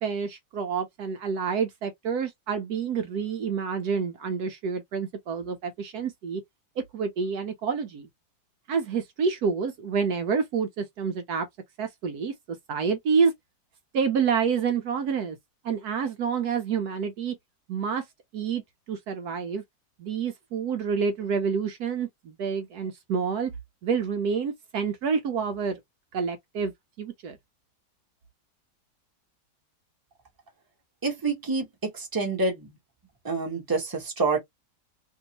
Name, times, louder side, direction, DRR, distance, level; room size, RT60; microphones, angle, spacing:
voice 1, 0.0-6.4 6.9-8.1 8.7-11.5 11.8-12.3 12.7-13.3 13.9-15.4 15.6-17.3 17.7-18.0 18.3-18.6 18.9-19.6 20.0-23.5 23.8-25.8 26.1-26.7 27.0-27.4, right 6 dB, 70° right, 1.1 m, -28 dB
voice 2, 31.0-32.7 33.2-34.4, right 3 dB, 15° right, 1.1 m, -27 dB
3.0 x 2.7 x 2.8 m
omnidirectional pair, 1.8 m